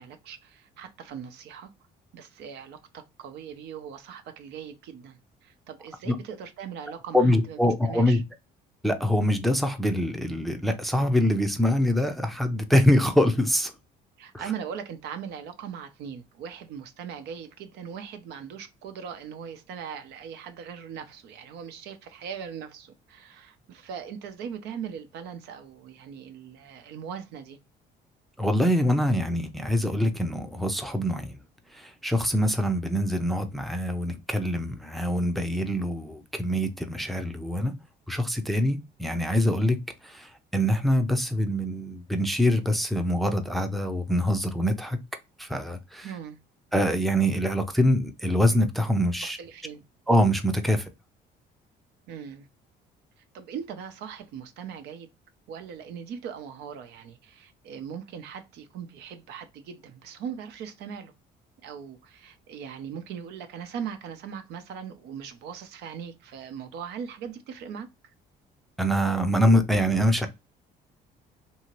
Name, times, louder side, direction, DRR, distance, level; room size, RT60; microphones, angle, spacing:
voice 1, 0.0-1.7 2.1-8.2 14.2-27.6 46.0-46.4 49.2-49.8 52.1-52.5 53.3-55.1 55.5-61.1 61.6-68.1, right 7 dB, 80° right, 0.7 m, -40 dB
voice 2, 7.1-8.2 8.8-13.7 28.4-31.4 31.7-37.7 38.1-39.8 40.0-45.0 45.4-46.1 46.7-49.4 50.1-50.9 68.8-70.3, equal, ahead, 0.5 m, -24 dB
2.8 x 2.7 x 2.9 m
cardioid pair, 110°, 17 cm